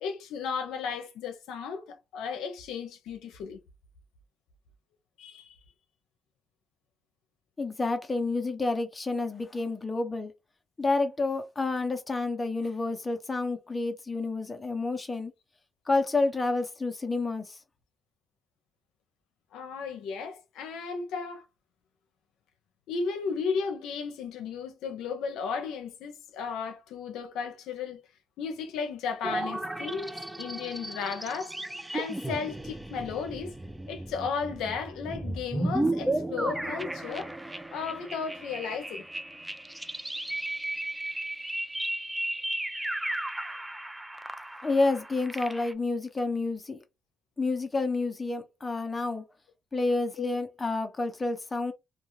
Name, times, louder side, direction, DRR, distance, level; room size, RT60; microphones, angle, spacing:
voice 1, 0.0-3.6 5.2-5.6 19.5-21.4 22.9-28.0 28.4-30.1 30.4-31.5 31.9-33.5 33.9-37.3 37.7-39.1 50.2-50.3, left 5 dB, 90° left, 0.6 m, -34 dB
voice 2, 7.6-10.3 10.8-15.3 15.9-17.6 44.6-46.8 47.4-49.2 49.7-51.7, left 3 dB, 25° left, 0.8 m, -29 dB
sound 1, 29.2-45.7, right 1 dB, 10° right, 0.4 m, -34 dB
2.4 x 2.4 x 3.1 m
cardioid pair, 90°, 0 cm